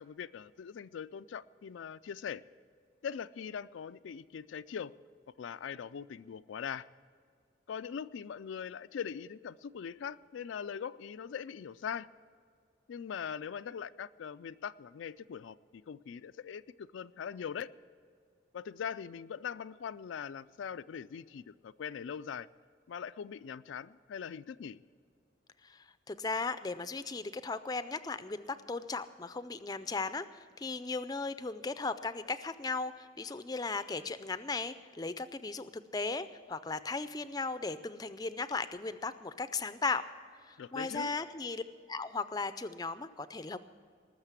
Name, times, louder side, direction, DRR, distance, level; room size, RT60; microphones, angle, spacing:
voice 1, 0.0-2.4 3.0-4.9 5.4-6.9 7.7-12.1 12.9-17.7 18.5-22.5 22.9-24.8 40.6-41.1, left 7 dB, 80° left, 13 dB, 0.4 m, -41 dB
voice 2, 25.6-40.0 40.5-41.6 41.9-43.6, left 3 dB, 20° left, 12 dB, 0.4 m, -37 dB
19.5 x 6.6 x 8.2 m, 2.1 s
head